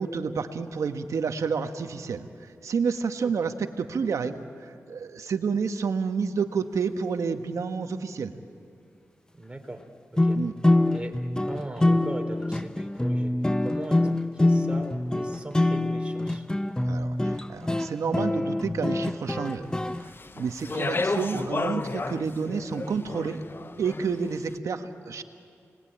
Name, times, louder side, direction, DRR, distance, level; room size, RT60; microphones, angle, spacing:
voice 1, 0.0-2.3 2.6-4.4 4.9-8.3 10.3-10.5 16.9-19.7 20.3-23.4 23.8-25.2, right 5 dB, 80° right, 7 dB, 1.3 m, -29 dB
voice 2, 9.3-9.8 10.1-10.4 10.9-11.2 11.4-13.3 13.6-16.5 20.6-20.9, right 1 dB, 20° right, 4 dB, 3.6 m, -39 dB
sound 1, 10.2-20.0, left 1 dB, 15° left, 0.8 m, -25 dB
Speech, 20.0-24.3, left 3 dB, 45° left, 1.0 m, -32 dB
29.0 x 20.5 x 8.9 m, 2.4 s
cardioid pair, 45°, 5 cm